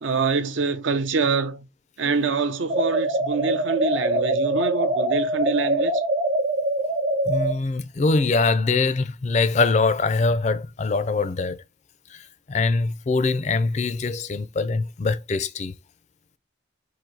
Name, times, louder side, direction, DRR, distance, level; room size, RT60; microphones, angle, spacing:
voice 1, 0.0-1.7 2.0-6.0, right 4 dB, 75° right, 0.6 m, -25 dB
sound 1, 2.7-7.6, right 1 dB, 55° right, 1.1 m, -23 dB
voice 2, 7.3-11.6 12.1-15.7, left 3 dB, 35° left, 0.4 m, -23 dB
3.9 x 2.6 x 4.5 m
head